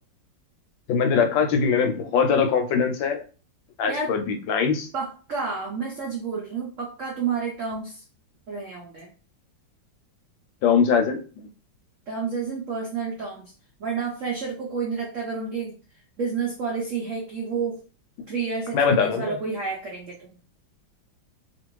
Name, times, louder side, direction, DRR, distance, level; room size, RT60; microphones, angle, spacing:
voice 1, 0.9-3.2 3.8-4.9 10.6-11.2 18.7-19.4, left 6 dB, 75° left, 6 dB, 1.3 m, -22 dB
voice 2, 4.9-8.0 8.5-9.1 12.1-13.5 13.8-15.7 16.2-17.8 18.3-20.3, right 5 dB, 85° right, -2 dB, 0.6 m, -30 dB
2.9 x 2.5 x 3.0 m, 0.37 s
omnidirectional pair, 2.1 m